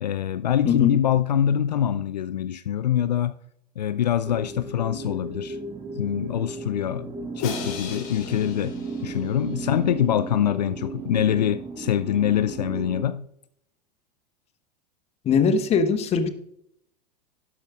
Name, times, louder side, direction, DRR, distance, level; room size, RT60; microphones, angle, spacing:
voice 1, 0.0-3.3 3.8-5.6 6.0-13.3, left 10 dB, 75° left, 0.4 m, -24 dB
voice 2, 0.6-1.0 15.2-16.3, left 6 dB, 30° left, 1.1 m, -21 dB
sound 1, 4.2-13.0, right 3 dB, 20° right, 1.8 m, -35 dB
Crash cymbal, 7.4-9.6, left 5 dB, 60° left, 3.2 m, -36 dB
12.0 x 10.0 x 2.4 m
figure-of-eight pair, 90°, 21 cm